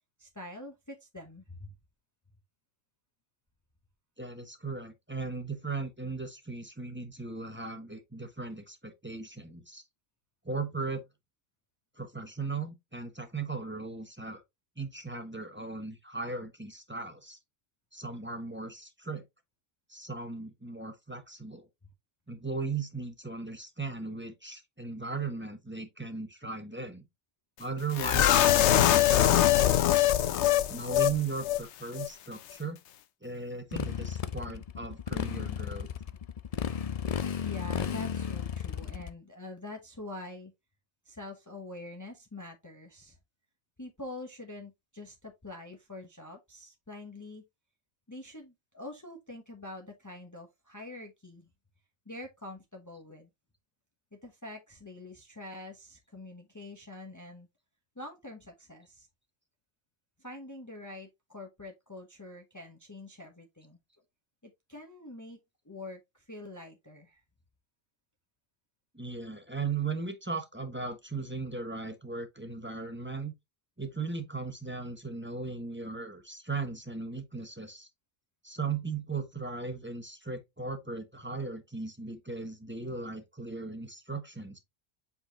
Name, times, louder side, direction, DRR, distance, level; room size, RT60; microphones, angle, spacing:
voice 1, 0.2-1.7 37.4-40.5 41.0-43.2 43.8-47.4 48.1-51.5 52.1-53.3 54.2-57.5 58.0-59.1 60.2-63.8 64.4-65.4 65.6-67.2, left 2 dB, 15° left, 1.1 m, -45 dB
voice 2, 4.2-9.8 10.4-11.0 12.0-14.4 14.8-17.4 17.9-19.2 19.9-21.7 22.3-27.1 27.6-30.1 30.7-32.8 33.2-35.9 68.9-73.3 73.8-77.9 78.4-84.6, right 4 dB, 10° right, 1.2 m, -37 dB
sound 1, 28.0-31.2 31.4-31.6 32.0-32.1, left 12 dB, 85° left, 0.9 m, -23 dB
Motorcycle, 33.7-39.1, left 7 dB, 50° left, 0.4 m, -34 dB
7.8 x 4.2 x 2.9 m
omnidirectional pair, 1.2 m